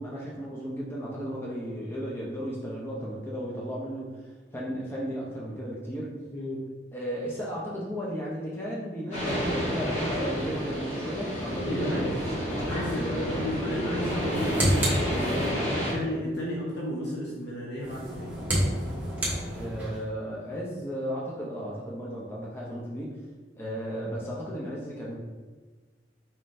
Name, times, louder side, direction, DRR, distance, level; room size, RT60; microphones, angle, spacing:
voice 1, 0.0-6.1 6.9-12.0 12.9-13.4 19.5-23.1 23.6-25.2, equal, 15° left, -5 dB, 0.6 m, -35 dB
voice 2, 6.3-6.6 11.6-12.3 12.6-18.4, left 1 dB, 60° left, -5 dB, 0.8 m, -33 dB
sound 1, 9.1-15.9, equal, 35° left, 1.4 m, -30 dB
sound 2, 14.1-15.8 17.8-20.1, right 1 dB, 10° right, 0.9 m, -29 dB
4.2 x 3.7 x 2.6 m, 1.4 s
head